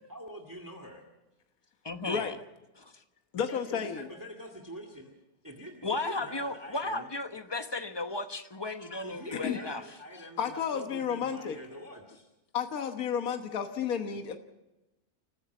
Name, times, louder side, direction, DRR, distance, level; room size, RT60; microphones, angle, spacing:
voice 1, 0.1-1.0 3.3-5.1 5.4-7.1 9.0-12.3, equal, 10° right, 2 dB, 2.1 m, -45 dB
voice 2, 1.8-2.4 2.8-2.9 5.8-9.8 10.1-10.2, left 2 dB, 20° left, 8 dB, 0.9 m, -35 dB
voice 3, 3.3-4.1 9.3-9.6 10.4-11.6 12.5-14.4, left 7 dB, 70° left, 6 dB, 1.6 m, -32 dB
29.5 x 14.5 x 6.0 m, 0.98 s
omnidirectional pair, 1.6 m